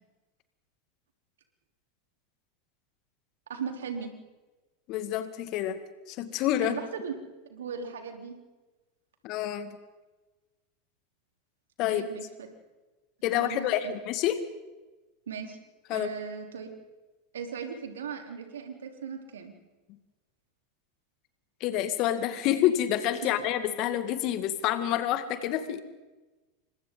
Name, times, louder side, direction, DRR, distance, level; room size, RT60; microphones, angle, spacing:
voice 1, 3.5-4.1 6.6-7.1 7.5-8.4 11.9-12.5 13.3-13.9 15.3-15.6 15.9-16.7 17.3-19.5 23.2-23.3, right 6 dB, 75° right, 4 dB, 3.7 m, -38 dB
voice 2, 4.9-6.8 9.2-9.7 11.8-12.1 13.2-14.4 15.9-16.1 21.6-25.8, left 12 dB, 50° left, 10 dB, 2.0 m, -28 dB
29.0 x 25.5 x 4.0 m, 1.2 s
figure-of-eight pair, 85°, 0 cm